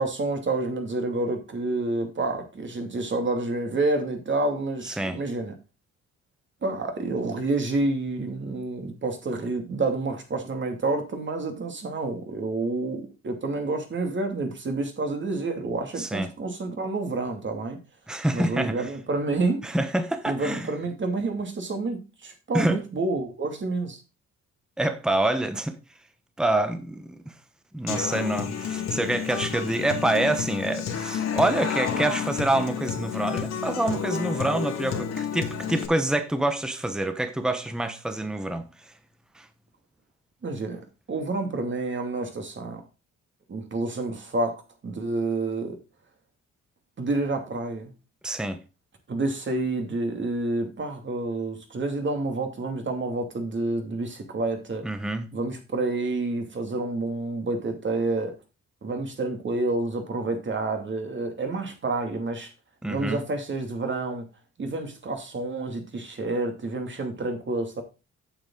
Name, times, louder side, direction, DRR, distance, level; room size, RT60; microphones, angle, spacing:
voice 1, 0.0-5.5 6.6-17.8 18.3-19.7 20.3-24.0 40.4-40.8 41.1-42.8 43.5-45.8 47.0-47.9 49.1-54.8 55.3-58.3 58.8-62.5 62.8-64.3 64.6-67.8, right 2 dB, 40° right, 2.6 m, -29 dB
voice 2, 4.8-5.2 16.0-16.3 18.1-18.9 19.6-20.7 22.5-22.8 24.8-25.8 26.4-27.2 27.7-38.7 39.3-39.5 48.2-48.6 54.8-55.3 62.8-63.2, right 1 dB, ahead, 1.1 m, -26 dB
Human voice / Acoustic guitar, 27.9-35.9, left 7 dB, 60° left, 2.2 m, -30 dB
8.5 x 7.2 x 3.8 m
cardioid pair, 90°, 30 cm